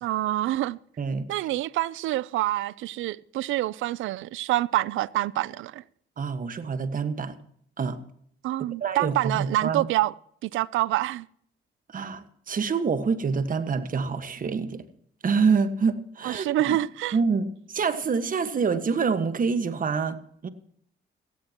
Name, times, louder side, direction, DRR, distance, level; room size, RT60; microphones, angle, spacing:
voice 1, 0.0-0.8 1.3-5.8 8.4-10.1 10.4-11.3 16.2-17.2, right 15 dB, 80° right, 0.5 m, -27 dB
voice 2, 1.0-1.3 6.2-7.4 7.8-8.0 8.8-9.9 11.9-14.8 15.2-16.7 17.1-20.2 20.4-20.5, right 5 dB, 45° right, 1.5 m, -26 dB
16.5 x 16.0 x 3.0 m
cardioid pair, 90°, 20 cm